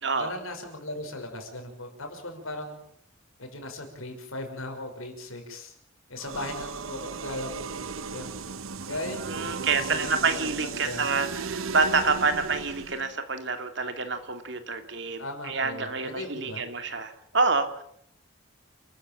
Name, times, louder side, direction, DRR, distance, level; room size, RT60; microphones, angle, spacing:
voice 1, 0.2-2.8 3.4-5.7 6.1-8.3 8.9-11.1 12.2-12.5 15.2-16.6, left 1 dB, 90° left, 4 dB, 6.0 m, -38 dB
sound 1, 6.2-13.1, right 5 dB, 85° right, 1.0 m, -36 dB
voice 2, 9.3-17.8, right 4 dB, 60° right, 7 dB, 2.6 m, -27 dB
29.0 x 14.0 x 7.6 m, 0.67 s
head